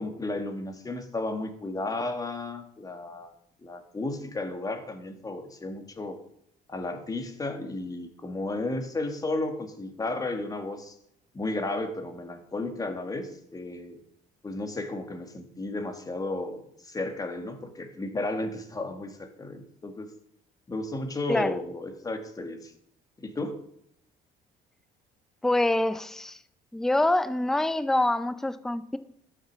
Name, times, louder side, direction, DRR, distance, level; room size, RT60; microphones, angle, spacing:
voice 1, 0.0-3.3 3.6-6.2 6.7-10.9 11.3-14.0 14.4-20.1 20.7-22.7 23.2-23.6, left 2 dB, 20° left, 1.7 m, -33 dB
voice 2, 25.4-26.4 26.7-29.0, left 1 dB, 5° left, 0.5 m, -25 dB
11.5 x 6.3 x 7.3 m
cardioid pair, 110°, 17 cm